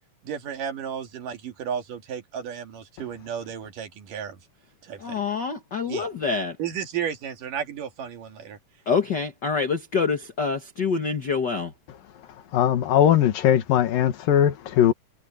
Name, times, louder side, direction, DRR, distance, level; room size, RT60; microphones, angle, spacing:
voice 1, 0.3-4.4 4.8-5.2 5.9-6.1 6.6-8.6, right 8 dB, 70° right, 3.7 m, -33 dB
voice 2, 5.0-6.5 8.9-11.7, left 5 dB, 45° left, 1.5 m, -26 dB
voice 3, 12.5-14.9, left 10 dB, 85° left, 3.3 m, -19 dB
omnidirectional pair, 3.9 m